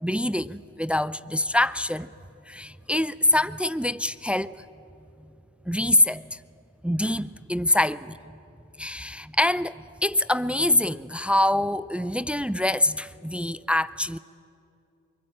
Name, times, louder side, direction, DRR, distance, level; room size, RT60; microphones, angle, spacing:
voice 1, 0.0-2.1 2.5-4.6 5.7-6.4 6.8-8.2 8.8-14.2, left 1 dB, 5° right, 17 dB, 0.5 m, -25 dB
23.0 x 19.5 x 8.8 m, 2.7 s
supercardioid pair, 60°, 33 cm